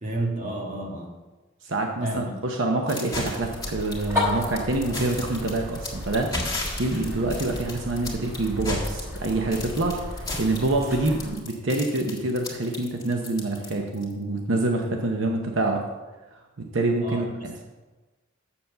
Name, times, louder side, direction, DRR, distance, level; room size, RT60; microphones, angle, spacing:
voice 1, 0.0-1.1 2.0-2.3 17.0-17.3, right 1 dB, 40° right, 0 dB, 1.7 m, -30 dB
voice 2, 1.6-10.0 10.4-15.8 16.6-17.6, right 2 dB, 75° right, 2 dB, 0.9 m, -26 dB
sound 1, 2.9-14.1, left 2 dB, 20° left, 1.8 m, -34 dB
sound 2, 3.4-11.3, left 2 dB, 15° right, 3.0 m, -33 dB
7.2 x 7.0 x 6.6 m, 1.2 s
head